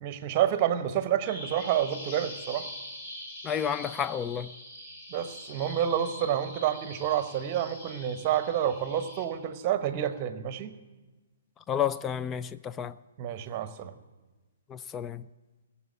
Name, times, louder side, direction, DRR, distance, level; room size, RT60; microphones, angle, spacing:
voice 1, 0.0-2.7 5.1-10.7 13.2-13.9, right 10 dB, 30° right, 0.9 m, -29 dB
Bird vocalization bird call bird song, 1.2-9.2, left 1 dB, 40° left, 2.8 m, -44 dB
voice 2, 3.4-4.5 11.7-13.0 14.7-15.3, left 8 dB, 15° left, 0.4 m, -31 dB
18.0 x 7.2 x 7.3 m
figure-of-eight pair, 130°, 0 cm